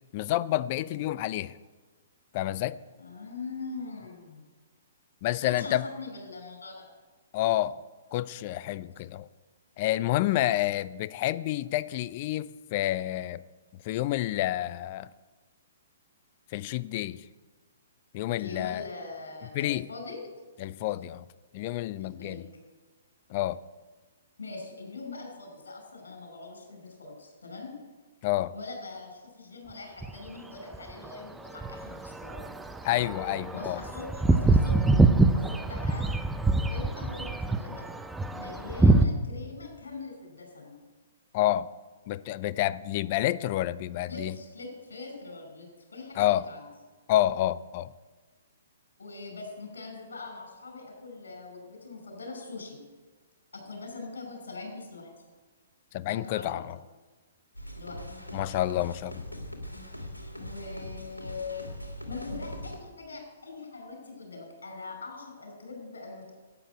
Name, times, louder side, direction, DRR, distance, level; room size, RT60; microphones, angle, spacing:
voice 1, 0.1-1.6 2.3-2.8 5.2-5.9 7.3-7.8 8.1-9.3 9.8-13.4 13.8-15.1 16.5-17.2 18.1-18.9 19.5-19.9 20.6-21.2 21.5-22.4 23.3-23.6 28.2-28.5 32.8-33.8 41.3-41.7 42.1-44.4 46.2-46.5 47.1-47.9 55.9-56.8 58.3-59.2, left 14 dB, 40° left, 18 dB, 0.5 m, -29 dB
voice 2, 3.0-4.4 5.4-6.8 18.4-20.2 22.0-22.4 24.4-27.8 28.5-32.4 33.5-34.8 35.3-36.1 36.5-37.9 38.3-40.7 44.1-46.6 49.0-52.8 53.5-55.1 56.0-56.6 57.8-58.0 60.4-66.3, left 3 dB, 70° left, 3 dB, 5.0 m, -42 dB
sound 1, 30.0-30.3 30.7-39.1, right 2 dB, 5° right, 0.7 m, -25 dB
sound 2, 57.5-62.8, left 1 dB, 90° left, 2.5 m, -41 dB
12.0 x 9.1 x 8.1 m, 1.3 s
figure-of-eight pair, 120°, 0 cm